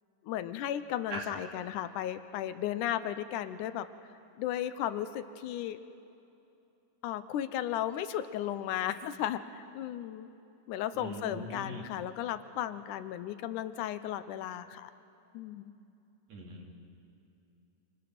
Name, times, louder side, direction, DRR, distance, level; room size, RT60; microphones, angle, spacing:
voice 1, 0.3-3.9 4.4-5.8 7.0-10.3 10.7-14.9 15.3-15.7, left 11 dB, 75° left, 12 dB, 2.1 m, -35 dB
voice 2, 10.9-11.8 16.3-16.7, right 1 dB, 55° right, -1 dB, 4.1 m, -40 dB
27.5 x 27.0 x 6.0 m, 2.8 s
omnidirectional pair, 3.9 m